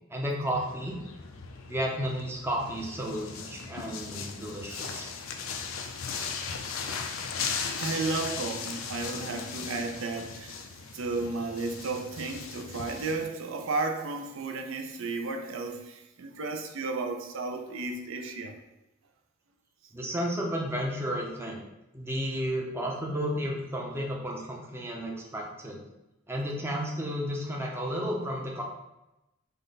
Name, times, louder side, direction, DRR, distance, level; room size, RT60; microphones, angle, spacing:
voice 1, 0.1-1.0 1.7-5.1 19.9-21.6 21.9-25.8 26.3-28.6, equal, 10° right, -2 dB, 0.6 m, -32 dB
sound 1, 0.5-13.2, left 5 dB, 70° left, 0.5 m, -38 dB
voice 2, 7.2-10.6 10.9-18.5 19.8-19.9, right 3 dB, 65° right, 3 dB, 0.5 m, -34 dB
5.4 x 2.2 x 3.9 m, 0.94 s
head